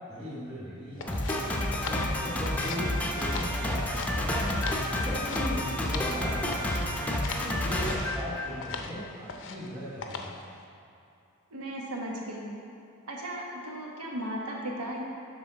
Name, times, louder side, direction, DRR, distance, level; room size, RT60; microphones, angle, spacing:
voice 1, 0.1-1.7 2.2-4.5 5.0-6.9 7.4-10.3, equal, 15° right, -12 dB, 1.7 m, -38 dB
sound 1, 1.0-2.9 3.1-4.1 4.4-6.2 6.5-6.9 7.2-7.5 7.9-8.2 8.6-8.9 9.3-9.7 10.0-10.4, left 5 dB, 60° left, 0.6 m, -39 dB
Run, 1.0-2.1 2.3-3.9 4.2-5.7 6.0-6.1, equal, 60° right, 1.6 m, -44 dB
Drum kit, 1.1-8.9, left 1 dB, 5° left, 0.6 m, -30 dB
voice 2, 11.5-12.5 13.1-15.0, right 1 dB, 90° right, -2 dB, 1.3 m, -36 dB
11.0 x 4.0 x 4.1 m, 2.6 s
head